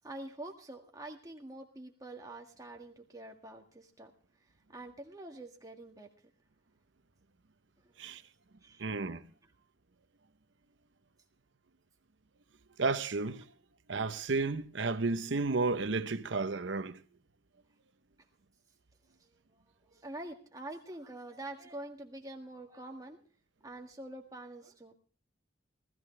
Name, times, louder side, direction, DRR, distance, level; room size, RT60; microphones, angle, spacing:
voice 1, 0.0-4.1 4.4-6.1 7.8-8.0 8.6-8.8 9.4-9.5 19.2-23.2 23.6-24.9, right 1 dB, 20° right, 1.8 m, -46 dB
voice 2, 8.8-9.3 12.8-13.5 13.9-17.0, right 3 dB, 80° right, 0.8 m, -32 dB
18.5 x 14.0 x 3.3 m
head